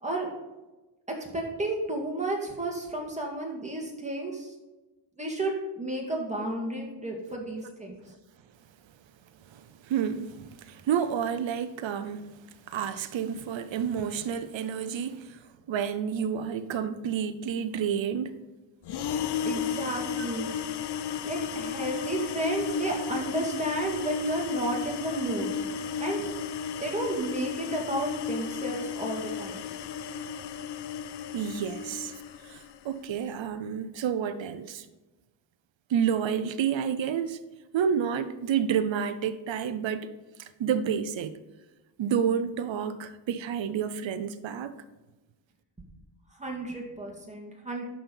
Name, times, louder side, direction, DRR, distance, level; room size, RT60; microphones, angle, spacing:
voice 1, 1.1-4.5 5.2-8.0 19.5-20.5 21.2-25.5 26.0-26.2 26.8-29.6 46.4-47.8, right 2 dB, 15° right, 2.0 m, -32 dB
voice 2, 9.4-12.3 12.7-18.4 20.2-20.3 31.3-32.1 32.4-34.9 35.9-37.4 37.7-40.1 40.4-41.4 42.0-44.8, right 8 dB, 75° right, 0.7 m, -30 dB
sound 1, 18.9-32.8, left 6 dB, 60° left, 0.6 m, -33 dB
11.0 x 4.3 x 5.4 m
wide cardioid pair, 140°, 46 cm